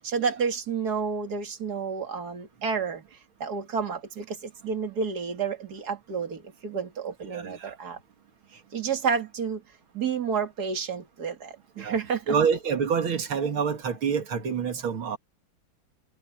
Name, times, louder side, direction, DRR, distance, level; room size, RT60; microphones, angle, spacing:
voice 1, 0.0-8.0 8.5-9.6 9.9-12.3, right 6 dB, 50° right, 2.9 m, -30 dB
voice 2, 7.3-7.8 11.8-12.0 12.3-15.2, right 6 dB, 90° right, 2.9 m, -27 dB
omnidirectional pair, 2.2 m